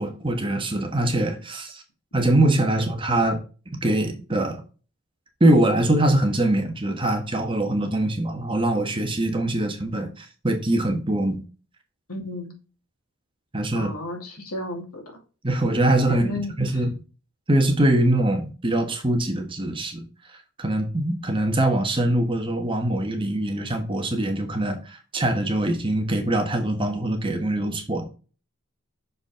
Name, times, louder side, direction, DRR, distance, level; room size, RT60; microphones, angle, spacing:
voice 1, 0.0-1.8 2.1-4.6 5.4-11.4 13.5-13.9 15.4-16.9 17.5-20.0 20.6-28.1, right 1 dB, 20° right, 1.3 m, -23 dB
voice 2, 12.1-12.5 13.7-15.0 16.1-16.5, left 1 dB, 85° left, 2.4 m, -32 dB
6.7 x 5.1 x 3.6 m
head